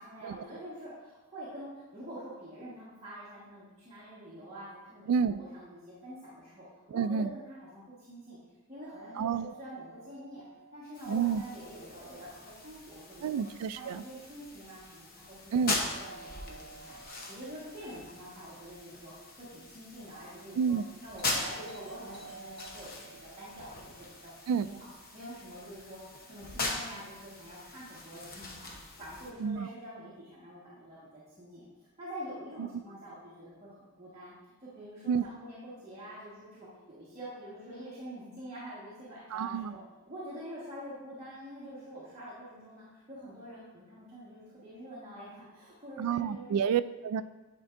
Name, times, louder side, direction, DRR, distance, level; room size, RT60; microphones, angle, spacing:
voice 1, 0.0-8.4 8.7-10.5 10.7-13.4 13.7-20.8 21.0-24.3 24.6-31.7 32.0-34.3 34.6-39.8 40.1-46.6, equal, 30° right, -9 dB, 1.5 m, -46 dB
voice 2, 5.1-5.4 6.9-7.3 9.2-9.5 11.1-11.4 13.2-14.0 15.5-15.8 20.6-20.8 24.5-24.7 29.4-29.7 32.6-32.7 35.1-35.2 39.3-39.7 46.0-47.3, right 7 dB, 90° right, 15 dB, 0.3 m, -29 dB
Doorbell, 8.8-12.8 15.7-19.9 21.2-25.6, right 3 dB, 25° left, 1.7 m, -53 dB
sound 1, 10.9-29.3, left 2 dB, 45° left, 0.9 m, -41 dB
9.4 x 4.6 x 2.5 m, 1.1 s
head